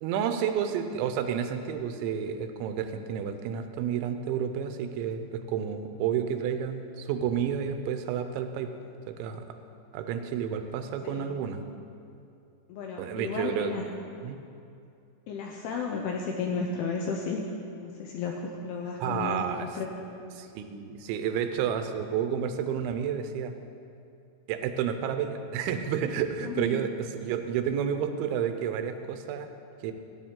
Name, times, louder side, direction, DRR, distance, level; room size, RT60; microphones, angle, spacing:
voice 1, 0.0-8.7 9.1-9.6 9.9-11.7 13.0-13.7 14.2-14.4 19.0-19.7 20.4-23.5 24.5-29.5 29.8-29.9, right 8 dB, 85° right, 8 dB, 3.0 m, -30 dB
voice 2, 11.0-11.4 12.7-13.9 15.3-17.5 17.8-19.4 19.7-20.0 26.4-26.9, left 5 dB, 80° left, 1 dB, 2.3 m, -33 dB
15.5 x 9.2 x 3.7 m, 2.6 s
omnidirectional pair, 5.3 m